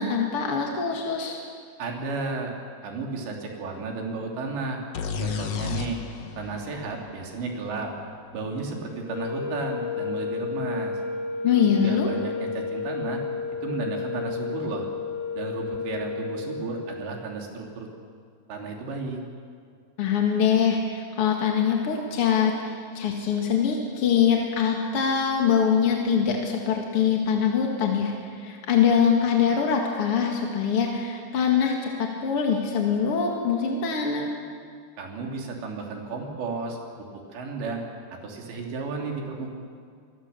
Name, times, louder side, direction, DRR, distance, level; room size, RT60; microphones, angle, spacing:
voice 1, 0.0-1.4 11.4-12.1 20.0-34.3, left 7 dB, 45° left, 0 dB, 2.1 m, -23 dB
voice 2, 1.8-2.5 2.8-4.8 5.2-6.0 6.4-7.9 8.3-11.0 11.5-13.2 13.6-14.9 15.4-17.9 18.5-19.2 35.0-36.8 37.1-37.8 38.1-39.5, right 4 dB, 85° right, 1 dB, 5.1 m, -33 dB
sound 1, 4.9-8.6, left 6 dB, 70° left, 1.6 m, -33 dB
sound 2, 9.0-17.2, left 5 dB, 20° left, 4.7 m, -32 dB
26.0 x 22.0 x 7.0 m, 2.1 s
omnidirectional pair, 5.0 m